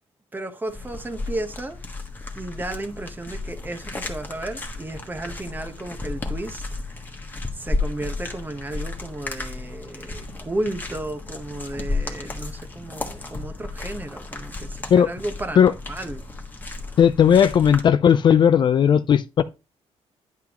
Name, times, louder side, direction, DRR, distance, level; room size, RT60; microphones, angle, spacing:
voice 1, 0.3-1.8 2.3-6.6 7.5-16.2, right 2 dB, 15° right, 1.0 m, -33 dB
sound 1, 0.7-17.8, left 3 dB, 15° left, 1.3 m, -33 dB
voice 2, 17.0-19.4, left 8 dB, 45° left, 0.4 m, -16 dB
10.5 x 5.9 x 3.0 m
cardioid pair, 130°, 11 cm